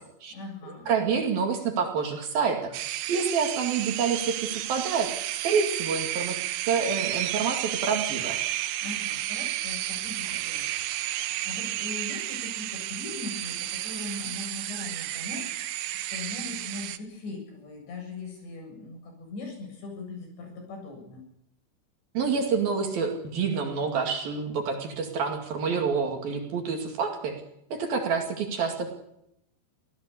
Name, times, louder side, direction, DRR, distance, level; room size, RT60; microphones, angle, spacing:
voice 1, 0.3-0.9 8.8-21.2, left 3 dB, 65° left, 2 dB, 9.8 m, -40 dB
voice 2, 0.9-5.1 5.4-6.4 6.6-8.4 22.1-27.4 27.7-29.0, right 5 dB, 55° right, 4 dB, 3.8 m, -28 dB
sound 1, 2.7-17.0, right 14 dB, 90° right, 3.6 m, -32 dB
26.0 x 16.5 x 8.4 m, 0.80 s
omnidirectional pair, 5.4 m